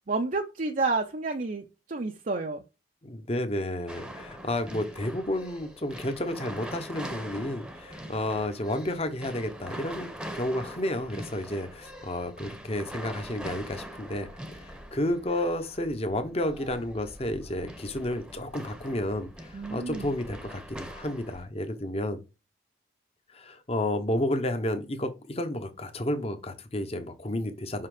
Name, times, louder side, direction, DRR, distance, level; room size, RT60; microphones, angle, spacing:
voice 1, 0.1-2.6 19.5-20.1, right 3 dB, 45° right, 0.6 m, -30 dB
voice 2, 3.0-14.3 14.5-22.2 23.3-27.9, left 1 dB, 35° left, 1.0 m, -31 dB
sound 1, 3.9-21.4, equal, 5° right, 0.9 m, -43 dB
5.8 x 5.4 x 4.9 m
head